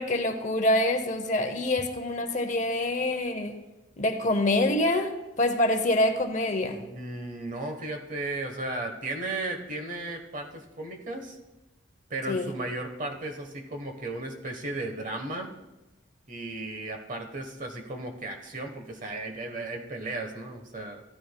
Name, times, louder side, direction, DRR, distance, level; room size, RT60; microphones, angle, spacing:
voice 1, 0.0-3.5 4.0-6.8 12.3-12.5, left 1 dB, 40° left, 7 dB, 0.8 m, -26 dB
voice 2, 6.6-11.4 12.1-15.5 16.3-21.0, right 2 dB, 40° right, 4 dB, 1.1 m, -35 dB
15.0 x 12.5 x 2.2 m, 1.0 s
head